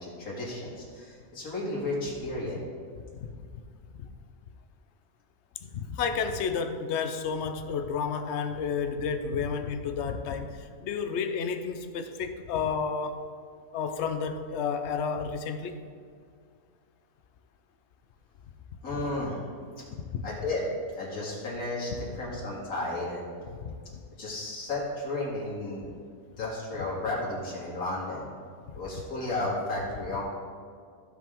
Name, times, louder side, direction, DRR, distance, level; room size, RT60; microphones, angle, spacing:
voice 1, 0.0-2.6 18.8-19.4 20.2-20.7 20.9-23.2 24.2-25.8 26.4-28.3 28.7-30.2, left 2 dB, 85° left, -7 dB, 2.6 m, -33 dB
voice 2, 5.7-13.2 13.7-15.8 19.9-20.2 23.6-23.8, left 6 dB, 60° left, 8 dB, 0.9 m, -31 dB
15.5 x 5.3 x 3.7 m, 2.1 s
omnidirectional pair, 1.5 m